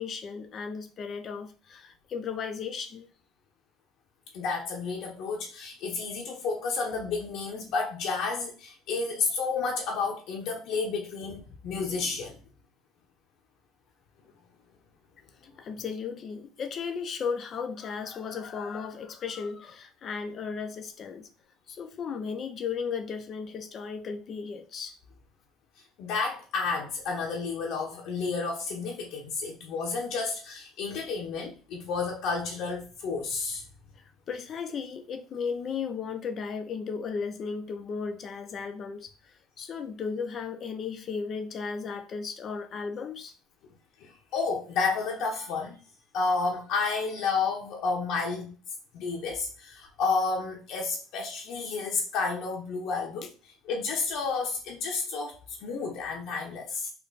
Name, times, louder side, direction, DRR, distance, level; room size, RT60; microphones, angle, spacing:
voice 1, 0.0-3.1 15.6-21.3 21.7-25.0 34.0-43.3, left 5 dB, 45° left, 0.5 m, -35 dB
voice 2, 4.3-12.4 26.0-33.6 44.0-45.8 46.1-48.6 48.9-53.3 53.6-56.9, left 4 dB, 65° left, 0.8 m, -31 dB
3.4 x 2.2 x 3.9 m
supercardioid pair, 100°, 0 cm